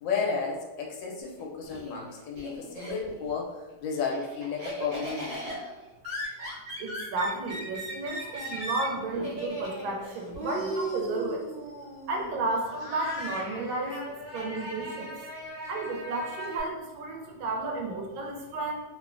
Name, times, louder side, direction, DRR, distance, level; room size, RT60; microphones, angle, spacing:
voice 1, 0.0-3.5 3.8-5.6, left 5 dB, 75° left, 0 dB, 1.2 m, -32 dB
Laughter, 1.2-3.3 3.7-16.6, right 1 dB, 65° right, 1.4 m, -38 dB
voice 2, 6.8-11.5 12.1-14.0 14.3-15.1 15.7-18.8, right 2 dB, 85° right, 1 dB, 1.3 m, -32 dB
3.2 x 2.0 x 2.4 m, 1.1 s
omnidirectional pair, 2.1 m